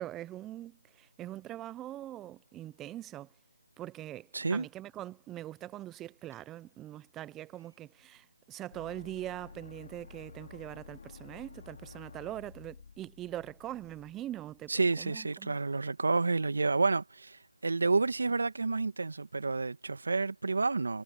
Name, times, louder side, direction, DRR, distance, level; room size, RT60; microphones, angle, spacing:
voice 1, 0.0-3.3 3.8-15.6, right 13 dB, 5° right, 0.4 m, -42 dB
voice 2, 4.3-4.7 14.7-21.0, right 3 dB, 60° right, 1.7 m, -30 dB
sound 1, 8.7-14.7, left 5 dB, 40° left, 2.7 m, -52 dB
figure-of-eight pair, 170°, 0 cm